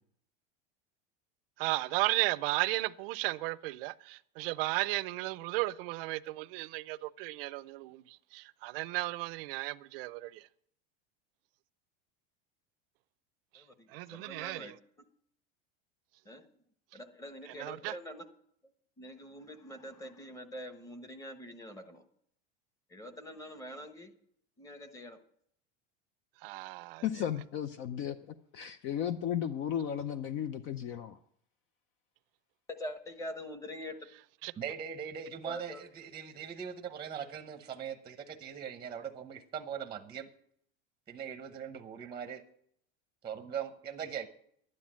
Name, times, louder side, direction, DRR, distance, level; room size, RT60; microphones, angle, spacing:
voice 1, 1.6-10.4 13.9-14.8 17.5-18.0 26.4-27.0 34.4-34.5, right 20 dB, 70° right, 0.6 m, -34 dB
voice 2, 13.5-14.7 16.2-16.4 16.9-18.3 19.0-22.0 22.9-24.1 24.6-25.2 32.8-34.0 35.4-35.8, equal, 10° left, 1.2 m, -44 dB
voice 3, 27.0-31.2, left 9 dB, 45° left, 0.6 m, -35 dB
voice 4, 34.6-40.3 41.1-42.4 43.2-44.3, right 8 dB, 15° right, 0.8 m, -40 dB
12.0 x 9.9 x 7.4 m
supercardioid pair, 155°, 29 cm